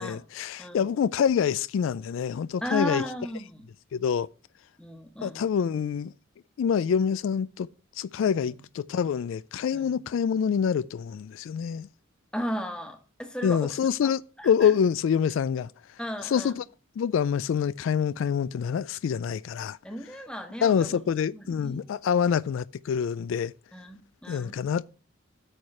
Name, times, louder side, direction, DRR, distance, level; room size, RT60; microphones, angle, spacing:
voice 1, 0.0-3.0 3.9-4.3 5.2-6.1 6.6-7.7 8.0-11.9 13.4-15.7 16.3-16.6 17.0-19.8 20.6-23.5 24.3-24.8, left 7 dB, 80° left, 0.3 m, -26 dB
voice 2, 0.6-1.0 2.6-3.6 4.8-5.5 8.4-8.6 9.7-9.9 12.3-13.7 14.0-14.1 14.4-14.7 16.0-16.5 19.8-21.0 21.3-22.0 23.7-24.5, equal, 5° left, 1.1 m, -35 dB
8.9 x 4.8 x 5.5 m
head